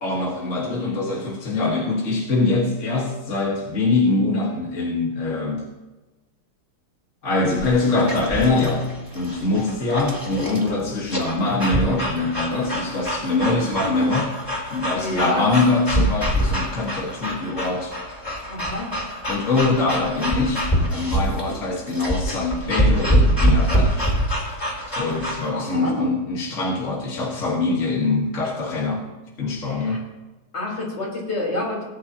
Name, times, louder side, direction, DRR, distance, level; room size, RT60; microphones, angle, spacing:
voice 1, 0.0-5.6 7.2-14.3 14.7-17.9 19.3-24.0 25.0-29.1 29.4-30.0, left 3 dB, 40° left, -2 dB, 1.7 m, -23 dB
sound 1, 7.5-25.5, equal, 10° left, 2.9 m, -25 dB
voice 2, 13.6-14.1 14.9-15.5 18.5-18.9 25.1-26.1 29.6-30.0 30.5-31.8, left 1 dB, 55° left, -4 dB, 4.5 m, -29 dB
19.5 x 9.8 x 2.9 m, 1.1 s
omnidirectional pair, 2.3 m